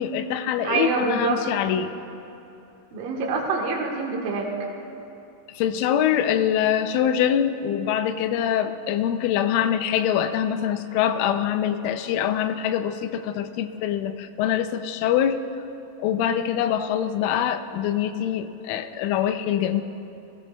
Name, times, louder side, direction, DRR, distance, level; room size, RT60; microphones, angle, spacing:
voice 1, 0.0-1.9 5.5-15.4 16.0-19.8, left 9 dB, 85° left, 10 dB, 3.1 m, -24 dB
voice 2, 0.6-1.4 2.9-4.5 16.2-16.4, right 4 dB, 60° right, -2 dB, 2.6 m, -26 dB
18.5 x 16.0 x 2.3 m, 2.9 s
omnidirectional pair, 5.5 m